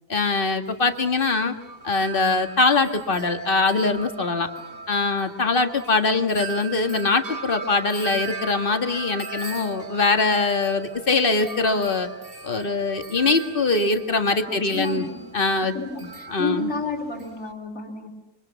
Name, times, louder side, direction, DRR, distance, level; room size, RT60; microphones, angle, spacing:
voice 1, 0.1-1.5 1.8-4.5 4.9-12.1 12.4-15.1 15.3-15.7 16.0-16.7, left 3 dB, 35° left, 7 dB, 1.9 m, -22 dB
Wind chime, 0.7-17.5, right 5 dB, 40° right, 2.0 m, -39 dB
voice 2, 14.5-15.2 15.7-18.1, left 2 dB, 60° left, -2 dB, 3.8 m, -31 dB
27.0 x 24.5 x 7.1 m, 0.90 s
omnidirectional pair, 1.6 m